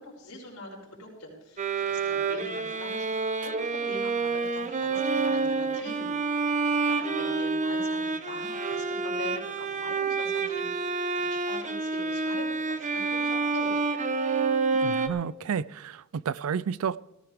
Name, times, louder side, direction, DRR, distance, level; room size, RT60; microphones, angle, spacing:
voice 1, 0.0-13.7, left 1 dB, 85° left, -2 dB, 4.8 m, -43 dB
Bowed string instrument, 1.6-15.1, right 4 dB, 35° right, 0.9 m, -28 dB
voice 2, 14.8-17.0, right 7 dB, 70° right, 20 dB, 0.4 m, -31 dB
18.0 x 14.5 x 3.5 m, 0.91 s
head